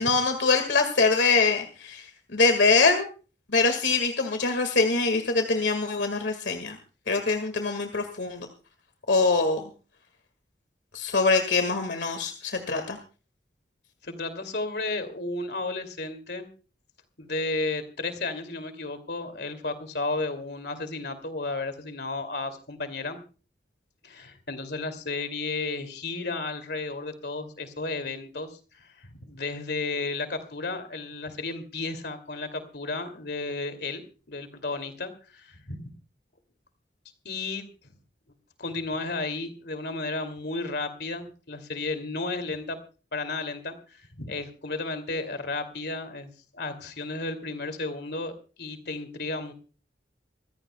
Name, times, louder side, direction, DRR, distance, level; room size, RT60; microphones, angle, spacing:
voice 1, 0.0-3.1 3.5-6.8 7.1-8.5 9.1-9.6 10.9-13.0, left 4 dB, 80° left, 6 dB, 1.8 m, -24 dB
voice 2, 14.0-16.5 17.2-23.2 24.0-35.9 37.2-37.9 38.6-42.8 43.1-49.5, left 3 dB, 65° left, 9 dB, 2.5 m, -33 dB
25.0 x 15.0 x 2.2 m, 0.36 s
head